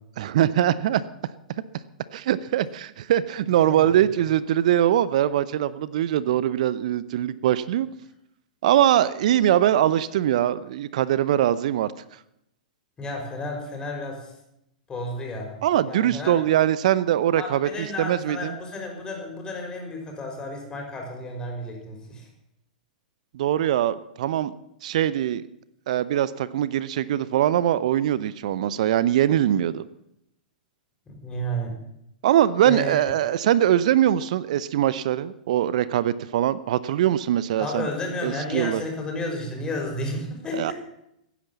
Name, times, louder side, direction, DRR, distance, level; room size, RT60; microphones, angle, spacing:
voice 1, 0.2-1.0 2.1-7.9 8.6-11.9 15.6-18.5 23.3-24.5 24.8-25.4 25.9-29.8 32.2-37.9 38.2-38.8 40.5-40.7, right 11 dB, 60° right, 17 dB, 0.7 m, -22 dB
voice 2, 13.0-14.3 14.9-15.6 15.9-16.4 17.4-22.3 31.1-31.7 32.7-33.0 37.6-40.7, left 1 dB, 20° left, 0 dB, 5.7 m, -32 dB
16.5 x 10.0 x 7.3 m, 0.80 s
figure-of-eight pair, 105°, 4 cm